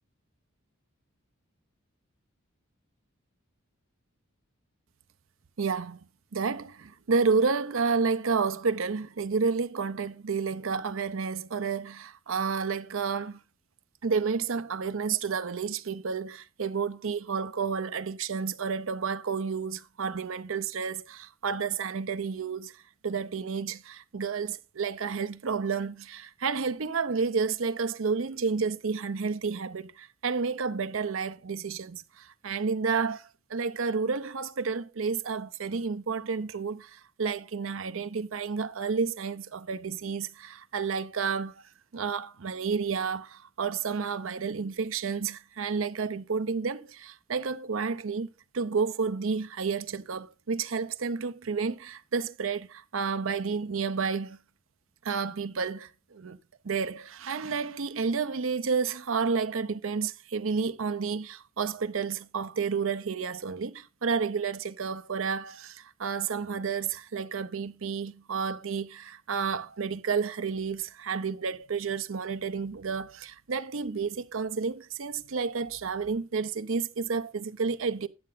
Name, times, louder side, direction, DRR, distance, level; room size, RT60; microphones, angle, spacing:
voice 1, 5.6-6.0 6.3-13.4 14.0-54.4 55.0-56.4 56.6-78.1, right 5 dB, 70° right, 0.6 m, -31 dB
9.5 x 7.6 x 3.9 m
head